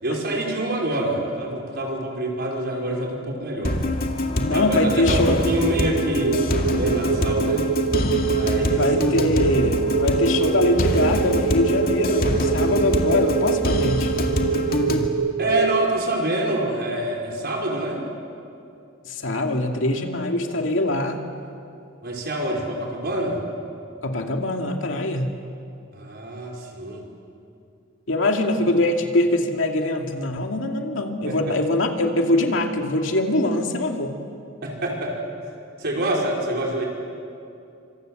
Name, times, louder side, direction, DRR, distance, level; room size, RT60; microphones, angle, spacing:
voice 1, 0.0-3.8 4.5-6.5 6.7-7.6 8.2-8.8 15.4-18.0 22.0-23.4 25.9-27.0 31.3-31.4 34.6-35.2 35.8-36.9, right 1 dB, 55° right, -1 dB, 5.2 m, -26 dB
sound 1, 3.6-15.1, left 1 dB, 50° left, 2.3 m, -25 dB
voice 2, 4.3-5.4 8.7-14.1 19.1-21.2 24.0-25.3 28.1-34.2, left 1 dB, 70° left, 3 dB, 2.4 m, -23 dB
sound 2, 5.8-15.9, right 7 dB, 85° right, 0.9 m, -25 dB
26.5 x 26.0 x 7.9 m, 2.6 s
head